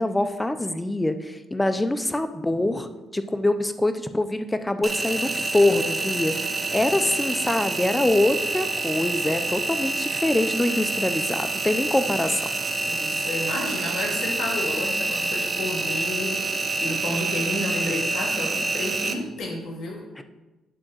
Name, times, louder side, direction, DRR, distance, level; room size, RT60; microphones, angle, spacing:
voice 1, 0.0-6.3 6.7-12.4 20.2-20.3, left 1 dB, 10° left, 10 dB, 0.6 m, -24 dB
Engine, 4.8-19.1, right 3 dB, 25° right, 0.8 m, -27 dB
voice 2, 12.9-20.0, left 2 dB, 70° left, -1 dB, 2.1 m, -31 dB
9.0 x 3.6 x 6.3 m, 1.1 s
cardioid pair, 90°, 0 cm